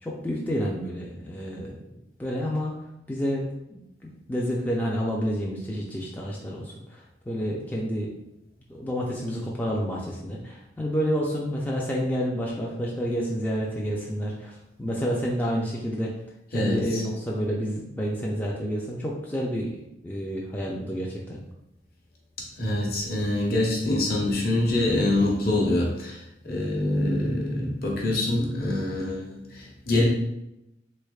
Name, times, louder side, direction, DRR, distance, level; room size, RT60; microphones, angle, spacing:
voice 1, 0.0-2.7 3.1-8.1 8.7-16.2 16.5-19.7 20.0-21.4, equal, 10° left, -3 dB, 0.3 m, -29 dB
voice 2, 16.5-17.0 22.6-30.0, left 1 dB, 55° left, -3 dB, 0.9 m, -25 dB
3.4 x 3.3 x 2.3 m, 0.87 s
head